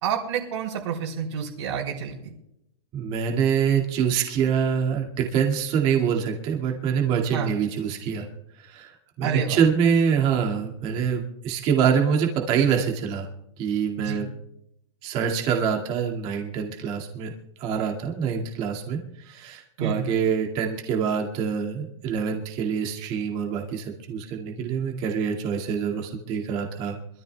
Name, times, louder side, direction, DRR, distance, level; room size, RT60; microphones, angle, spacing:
voice 1, 0.0-2.3 7.3-7.5 9.2-9.6 14.0-14.2 19.8-20.0, right 7 dB, 60° right, -6 dB, 3.6 m, -29 dB
voice 2, 2.9-8.3 8.6-13.3 13.6-14.3 15.0-17.3 17.6-27.0, right 7 dB, 30° right, 0 dB, 2.2 m, -25 dB
26.5 x 13.5 x 2.3 m, 0.81 s
supercardioid pair, 165°, 17 cm